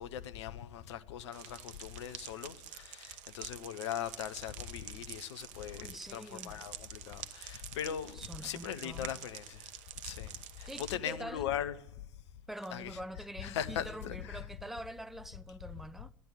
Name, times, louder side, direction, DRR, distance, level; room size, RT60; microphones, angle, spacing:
voice 1, 0.0-9.7 10.0-12.0 12.7-13.0 13.4-14.5, left 10 dB, 65° left, 0.9 m, -40 dB
sound 1, 1.3-10.9, right 12 dB, 50° right, 1.0 m, -48 dB
voice 2, 5.7-6.6 8.1-9.1 10.7-11.5 12.5-16.1, right 1 dB, ahead, 0.6 m, -45 dB
12.0 x 9.4 x 9.9 m
figure-of-eight pair, 65°, 16 cm